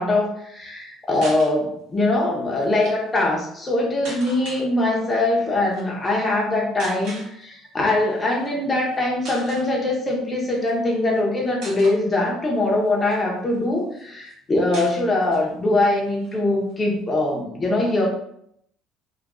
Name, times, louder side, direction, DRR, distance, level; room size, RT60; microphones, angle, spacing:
voice 1, 0.0-18.1, left 2 dB, 20° left, -2 dB, 0.9 m, -22 dB
sound 1, 1.1-1.5 2.6-2.9 4.0-4.6 5.7-5.9 6.8-7.3 8.3-8.5 8.9-9.0 9.2-9.7 10.6-11.2 11.6-12.0 12.6-13.6 14.0-14.1 14.3-14.4 14.7-15.5 15.8-15.9 16.2-17.3, right 2 dB, 70° right, 1.4 m, -38 dB
3.5 x 2.5 x 2.5 m, 0.72 s
cardioid pair, 130°, 0 cm